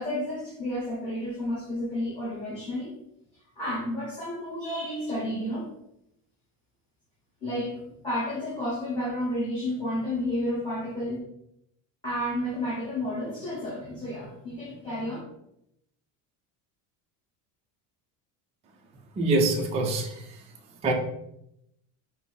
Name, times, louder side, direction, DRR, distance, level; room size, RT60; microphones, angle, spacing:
voice 1, 0.0-2.9 3.5-5.7 7.4-11.2 12.0-15.2, left 1 dB, 10° left, -8 dB, 1.3 m, -31 dB
voice 2, 19.2-20.2 20.8-20.9, right 2 dB, 15° right, 1 dB, 0.4 m, -24 dB
5.9 x 2.0 x 4.0 m, 0.79 s
cardioid pair, 155°, 40 cm